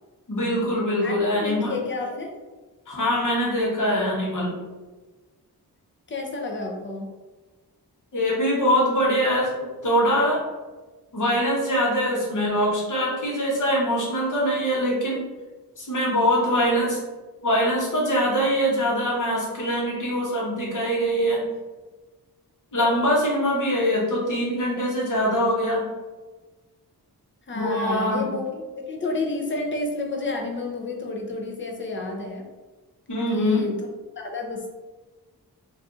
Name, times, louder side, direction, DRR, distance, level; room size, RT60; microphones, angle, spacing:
voice 1, 0.3-1.7 2.9-4.6 8.1-10.4 11.1-15.2 15.8-17.0 17.4-21.4 22.7-25.9 27.5-28.3 33.1-33.7, equal, 55° left, -4 dB, 1.1 m, -23 dB
voice 2, 1.0-2.4 6.1-7.1 27.5-32.5 33.3-33.8 34.2-34.7, left 3 dB, 30° left, 1 dB, 0.5 m, -30 dB
2.6 x 2.4 x 3.6 m, 1.2 s
wide cardioid pair, 165°, 38 cm